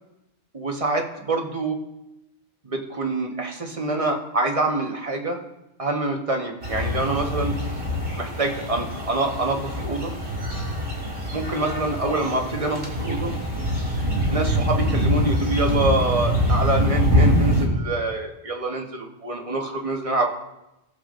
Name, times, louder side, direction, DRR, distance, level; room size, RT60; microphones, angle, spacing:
voice 1, 0.5-1.8 2.6-5.4 5.8-7.5 8.2-10.1 11.3-13.3 14.3-20.3, right 2 dB, 30° right, 1 dB, 1.3 m, -26 dB
sound 1, 6.6-17.7, equal, 50° right, 2.9 m, -24 dB
19.5 x 7.2 x 2.5 m, 0.92 s
omnidirectional pair, 1.2 m